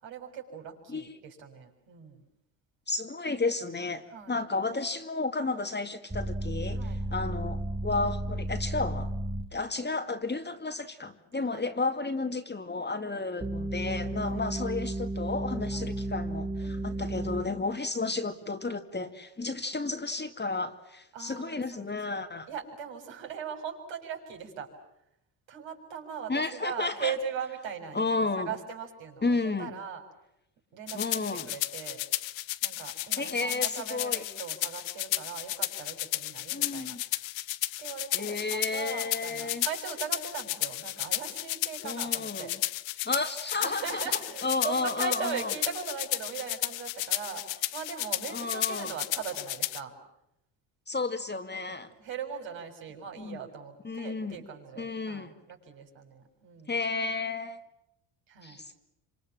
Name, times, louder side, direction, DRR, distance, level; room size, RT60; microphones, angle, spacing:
voice 1, 0.0-2.2 4.1-4.4 6.7-7.0 11.5-11.7 12.6-13.1 14.2-14.4 15.7-15.9 16.6-17.1 17.6-17.8 21.1-24.7 25.5-29.3 29.6-30.0 30.7-31.1 31.5-32.0 32.6-37.0 37.8-42.5 43.6-50.0 51.5-56.8 58.3-58.6, right 7 dB, 65° right, 2 dB, 7.1 m, -40 dB
voice 2, 2.9-6.8 7.1-9.1 9.5-22.5 26.3-27.1 27.9-28.5 29.2-29.7 30.9-31.5 33.2-34.2 36.5-37.0 38.1-39.7 41.8-42.5 43.1-45.5 48.3-48.9 50.9-51.9 53.2-53.4 53.8-54.5 54.8-55.3 56.7-57.6 58.4-58.7, left 3 dB, 20° left, 6 dB, 2.2 m, -32 dB
sound 1, 6.1-9.5 13.4-17.4, right 1 dB, 10° right, 1.7 m, -33 dB
sound 2, 30.9-49.8, left 17 dB, 65° left, 1.0 m, -33 dB
27.0 x 26.0 x 7.5 m, 0.80 s
supercardioid pair, 75°, 49 cm